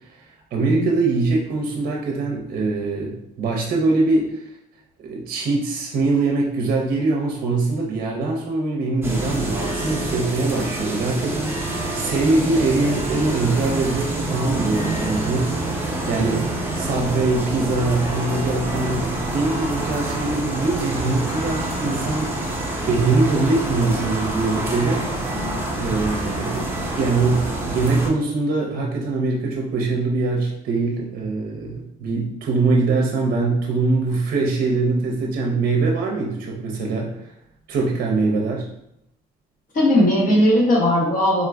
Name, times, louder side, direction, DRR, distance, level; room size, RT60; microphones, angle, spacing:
voice 1, 0.5-4.4 5.0-22.5 22.8-25.0 25.7-26.7 26.9-37.3 37.7-38.7, right 3 dB, 60° right, 0 dB, 0.6 m, -23 dB
sound 1, 9.0-28.1, right 1 dB, 10° right, 0.7 m, -27 dB
voice 2, 39.7-41.5, left 1 dB, 50° left, -4 dB, 1.0 m, -17 dB
3.6 x 2.4 x 2.2 m, 0.79 s
cardioid pair, 95°, 17 cm